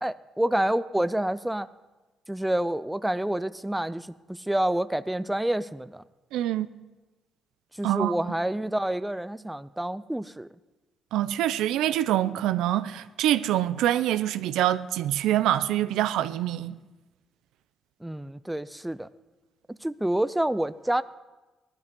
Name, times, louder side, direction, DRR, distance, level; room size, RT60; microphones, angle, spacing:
voice 1, 0.0-1.7 2.3-6.0 7.8-10.5 18.0-19.1 19.7-21.0, right 1 dB, 5° right, 0.5 m, -28 dB
voice 2, 6.3-6.7 7.8-8.1 11.1-16.8, right 13 dB, 90° right, 0.5 m, -25 dB
18.5 x 12.0 x 5.3 m
cardioid pair, 90°, 0 cm